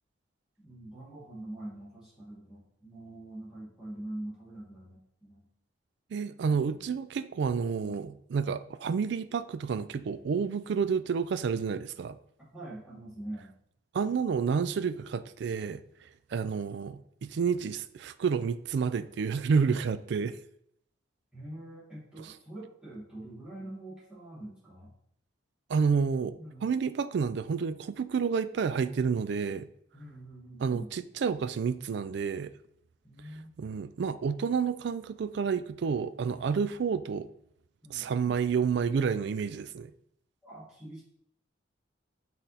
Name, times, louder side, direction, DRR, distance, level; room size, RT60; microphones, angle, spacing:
voice 1, 0.6-5.5 6.5-6.9 12.5-13.6 21.3-24.9 26.4-26.7 29.9-30.9 33.0-33.5 37.8-38.3 40.4-41.0, right 1 dB, 5° right, 2.4 m, -44 dB
voice 2, 6.1-12.2 13.9-15.8 16.3-20.4 22.2-22.3 25.7-29.7 30.6-32.5 33.6-37.3 37.9-39.9, right 6 dB, 60° right, 0.3 m, -30 dB
6.0 x 3.8 x 4.1 m
head